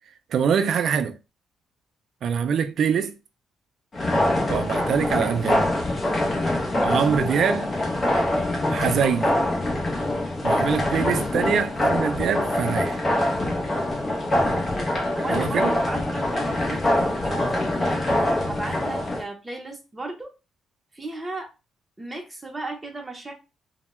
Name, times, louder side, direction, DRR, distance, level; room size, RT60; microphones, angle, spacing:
voice 1, 0.3-1.2 2.2-3.1 4.5-5.7 6.8-7.7 8.7-9.4 10.4-13.0 15.3-15.7, right 7 dB, 65° right, 0.3 m, -24 dB
sound 1, 3.9-19.2, left 1 dB, 35° left, 0.7 m, -24 dB
voice 2, 6.6-7.5 14.5-18.0 18.5-20.3 20.9-21.5 22.0-23.3, right 2 dB, 15° right, 0.7 m, -35 dB
2.2 x 2.1 x 2.9 m
cardioid pair, 90°, 0 cm